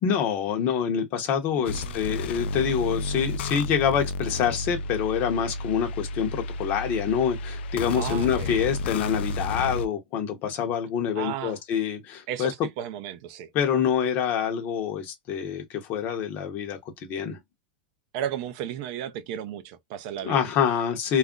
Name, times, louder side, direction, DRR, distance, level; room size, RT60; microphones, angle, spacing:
voice 1, 0.0-12.5 13.5-17.4 20.2-21.2, left 8 dB, 30° left, 0.7 m, -26 dB
voice 2, 1.6-2.0 7.9-8.5 11.1-11.6 12.3-13.5 18.1-20.4, right 10 dB, 40° right, 0.4 m, -34 dB
sound 1, 1.7-9.9, left 2 dB, 90° left, 0.3 m, -32 dB
2.3 x 2.0 x 3.6 m
supercardioid pair, 170°, 6 cm